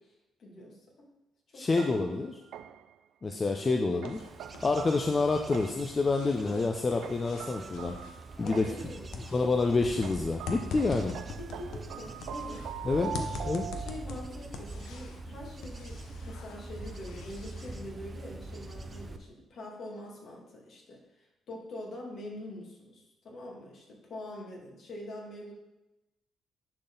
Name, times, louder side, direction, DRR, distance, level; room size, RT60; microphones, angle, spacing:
voice 1, 0.4-1.1 1.5-1.7 8.4-9.1 11.4-13.4 13.7-25.5, left 1 dB, 60° left, -1 dB, 2.2 m, -44 dB
voice 2, 1.6-2.4 3.2-4.2 4.6-8.0 8.4-8.7 9.3-11.2 12.8-13.1 13.4-13.7, left 3 dB, 30° left, 3 dB, 0.6 m, -28 dB
sound 1, 1.8-3.0 4.0-6.0 7.0-9.0 10.0-14.3, right 9 dB, 80° right, 0.3 m, -43 dB
sound 2, 3.6-4.8 5.0-8.9 9.1-12.7 13.1-15.3 15.6-17.8, left 4 dB, 80° left, 0.8 m, -44 dB
Bird / Insect / Wind, 4.1-19.2, right 2 dB, 30° right, 0.7 m, -44 dB
10.5 x 4.1 x 3.9 m, 0.98 s
cardioid pair, 90°, 0 cm